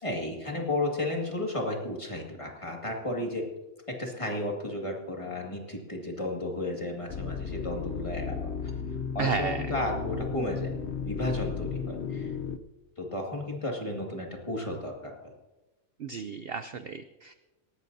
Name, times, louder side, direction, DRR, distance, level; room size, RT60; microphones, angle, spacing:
voice 1, 0.0-3.5 3.9-8.5 9.1-10.8 11.0-12.3 13.0-15.3, left 1 dB, 20° left, 0 dB, 2.1 m, -33 dB
sound 1, 7.1-12.6, left 6 dB, 55° left, 1.0 m, -34 dB
voice 2, 9.2-9.7 16.0-17.4, right 5 dB, 55° right, 9 dB, 0.7 m, -33 dB
19.0 x 17.5 x 2.7 m, 1.1 s
omnidirectional pair, 1.4 m